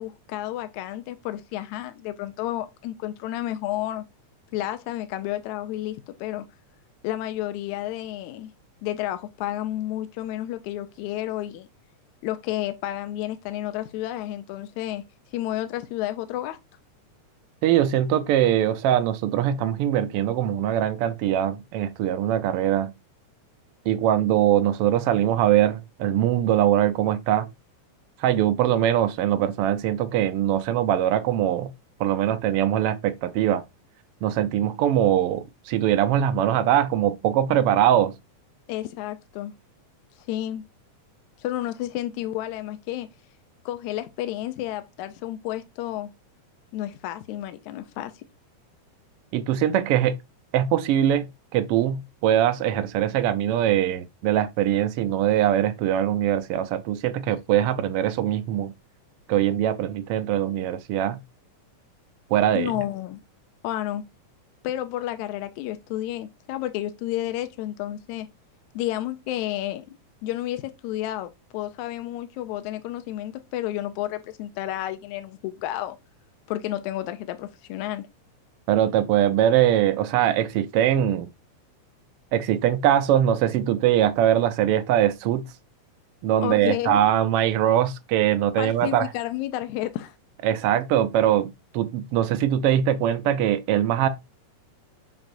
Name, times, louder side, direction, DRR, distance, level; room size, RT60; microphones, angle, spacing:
voice 1, 0.0-4.0 4.5-6.5 7.0-8.5 8.8-11.7 12.2-15.0 15.3-16.6 38.7-39.5 40.2-40.6 41.4-43.1 43.7-46.1 46.7-48.2 62.5-63.2 63.6-64.0 64.6-68.3 68.8-76.0 76.5-78.1 86.4-87.0 88.6-90.2, left 13 dB, 80° left, 2.0 m, -31 dB
voice 2, 17.6-22.9 23.9-27.5 28.2-31.7 32.0-33.6 34.2-38.1 49.3-50.2 50.5-51.3 51.5-58.7 59.3-61.2 62.3-62.7 78.7-81.3 82.3-85.5 86.2-89.1 90.4-94.1, right 11 dB, 85° right, 1.3 m, -22 dB
7.6 x 6.0 x 2.6 m
omnidirectional pair, 3.4 m